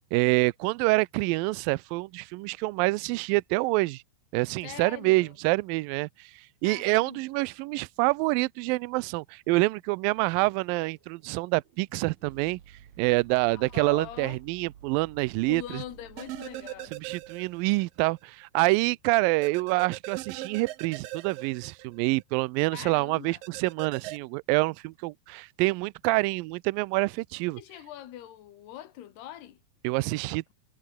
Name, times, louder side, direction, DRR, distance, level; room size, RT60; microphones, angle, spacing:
voice 1, 0.1-4.0 4.3-6.3 6.6-12.6 13.0-15.8 16.9-27.6 29.8-30.4, right 23 dB, 90° right, 2.0 m, -26 dB
voice 2, 4.6-5.3 6.6-7.2 13.5-14.4 15.5-17.0 22.7-23.4 27.6-29.6 30.1-30.2, left 12 dB, 80° left, 4.0 m, -43 dB
sound 1, 10.0-18.1, right 9 dB, 50° right, 2.8 m, -53 dB
sound 2, 16.2-17.9 18.2-18.3 19.4-22.2 23.4-24.2, right 15 dB, 70° right, 2.4 m, -40 dB
omnidirectional pair, 4.6 m